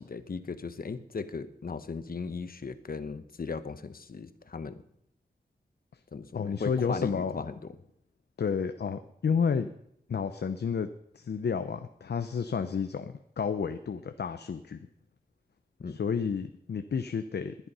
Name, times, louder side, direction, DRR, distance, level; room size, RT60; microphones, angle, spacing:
voice 1, 0.0-4.8 6.1-7.6 15.8-16.0, left 4 dB, 60° left, 11 dB, 1.1 m, -37 dB
voice 2, 6.3-7.5 8.4-9.7 10.1-10.9 11.1-14.8 15.9-17.6, left 6 dB, 85° left, 9 dB, 0.8 m, -31 dB
20.0 x 11.0 x 5.6 m, 0.73 s
wide cardioid pair, 100°, 17 cm